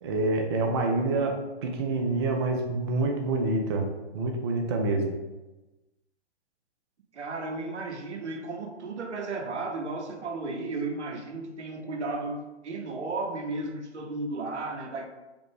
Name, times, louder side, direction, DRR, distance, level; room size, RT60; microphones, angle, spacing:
voice 1, 0.0-5.2, right 2 dB, 25° right, 0.3 m, -27 dB
voice 2, 7.1-15.1, right 3 dB, 85° right, 0.8 m, -34 dB
5.1 x 2.0 x 4.7 m
hypercardioid pair, 130°, 34 cm